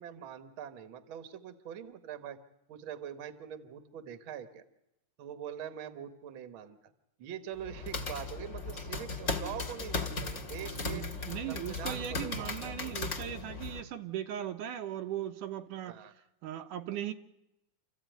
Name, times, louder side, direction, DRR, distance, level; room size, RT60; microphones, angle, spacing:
voice 1, 0.0-2.4 2.7-4.7 5.2-6.8 7.2-11.1 11.5-12.9 15.8-16.1, right 9 dB, 50° right, 1.7 m, -43 dB
sound 1, 7.6-13.8, left 3 dB, 30° left, 1.5 m, -37 dB
voice 2, 10.6-16.0 16.4-17.1, right 11 dB, 80° right, 2.6 m, -38 dB
28.0 x 14.5 x 9.2 m
omnidirectional pair, 3.6 m